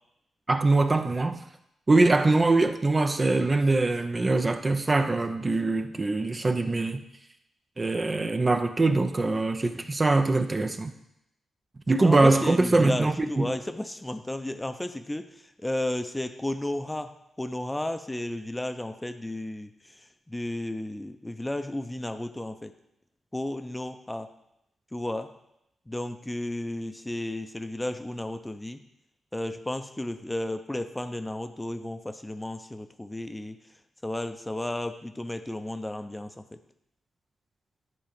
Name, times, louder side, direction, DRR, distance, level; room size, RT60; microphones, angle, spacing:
voice 1, 0.5-1.4 1.9-7.0 7.8-10.9 11.9-13.5, right 2 dB, 35° right, 7 dB, 0.7 m, -23 dB
voice 2, 12.0-15.3 15.6-19.7 20.3-22.7 23.3-24.3 24.9-25.3 25.9-28.8 29.3-33.6 34.0-36.6, left 1 dB, 15° left, 8 dB, 0.8 m, -33 dB
10.5 x 3.7 x 5.3 m, 0.81 s
supercardioid pair, 45°, 0 cm